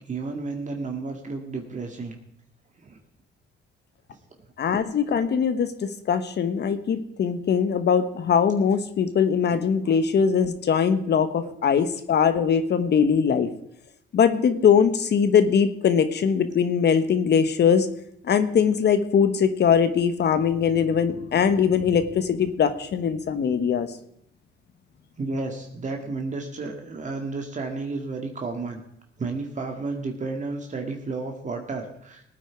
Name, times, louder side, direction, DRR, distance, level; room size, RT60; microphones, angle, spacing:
voice 1, 0.1-2.2 2.8-3.0 9.8-9.9 11.4-11.5 25.2-28.8 29.2-32.3, right 3 dB, 40° right, 3 dB, 2.1 m, -32 dB
voice 2, 4.6-13.5 14.1-17.9 18.2-23.9, left 7 dB, 60° left, 10 dB, 1.4 m, -21 dB
19.0 x 9.1 x 4.6 m, 0.73 s
cardioid pair, 90°, 20 cm